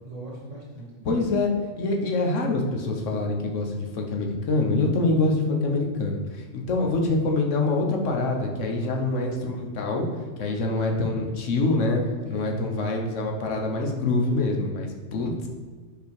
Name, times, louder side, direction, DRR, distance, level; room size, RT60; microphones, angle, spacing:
voice 1, 0.0-1.1 8.8-9.1 12.3-12.7, right 2 dB, 70° right, -4 dB, 1.8 m, -40 dB
voice 2, 1.0-10.1 10.4-12.0 12.3-15.5, left 2 dB, 75° left, 1 dB, 1.3 m, -25 dB
5.1 x 5.1 x 4.6 m, 1.5 s
omnidirectional pair, 1.3 m